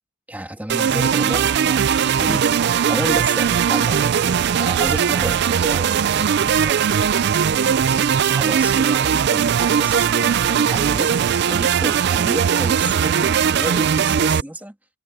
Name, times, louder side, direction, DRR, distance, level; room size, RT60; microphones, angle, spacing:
voice 1, 0.3-6.8 7.5-11.1 11.5-14.7, right 1 dB, 10° right, 1.9 m, -32 dB
sound 1, 0.7-14.4, right 7 dB, 55° right, 0.4 m, -19 dB
head